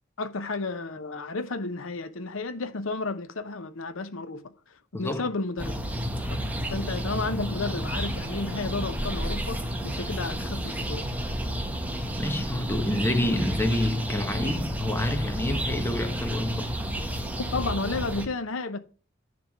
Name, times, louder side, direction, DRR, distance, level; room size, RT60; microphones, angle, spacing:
voice 1, 0.2-5.7 6.7-9.6 9.8-11.1 17.4-18.8, left 3 dB, 80° left, 0.8 m, -32 dB
voice 2, 4.9-5.3 12.2-16.7, left 1 dB, 10° left, 1.1 m, -27 dB
sound 1, 5.6-18.3, equal, 10° right, 1.1 m, -31 dB
10.5 x 3.5 x 7.2 m
head